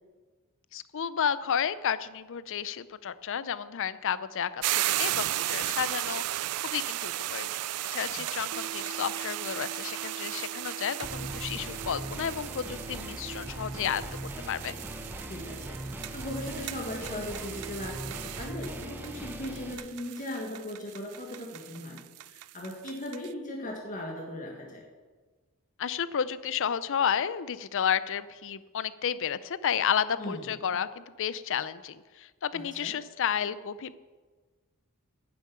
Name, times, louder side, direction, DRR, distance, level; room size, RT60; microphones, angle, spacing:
voice 1, 0.7-7.5 7.9-14.0 14.5-14.8 25.8-33.9, left 8 dB, 60° left, 15 dB, 0.5 m, -31 dB
sound 1, 4.6-23.3, right 15 dB, 85° right, 0.4 m, -36 dB
sound 2, 8.5-20.6, right 5 dB, 65° right, 0.8 m, -50 dB
sound 3, 11.0-19.7, right 1 dB, 10° right, 0.8 m, -40 dB
voice 2, 15.3-15.8 16.1-22.0 22.3-24.8 30.2-30.5 32.5-32.9, left 1 dB, 35° left, -1 dB, 1.7 m, -38 dB
11.0 x 7.5 x 8.6 m, 1.4 s
head